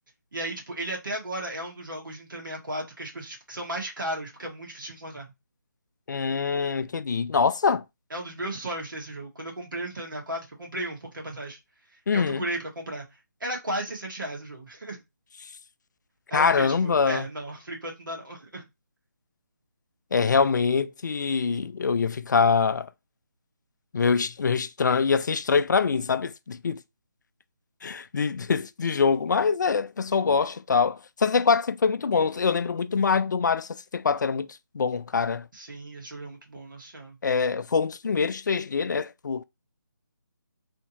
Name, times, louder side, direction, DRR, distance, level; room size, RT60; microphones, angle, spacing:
voice 1, 0.3-5.3 8.1-11.6 12.1-13.0 13.4-15.0 16.3-18.6 35.5-37.2, right 1 dB, 75° right, 1.8 m, -35 dB
voice 2, 6.1-7.8 12.1-12.4 16.3-17.2 20.1-22.9 23.9-26.8 27.8-34.5 34.7-35.5 37.2-39.4, left 5 dB, 65° left, 0.4 m, -24 dB
3.5 x 2.7 x 2.9 m
figure-of-eight pair, 155°, 11 cm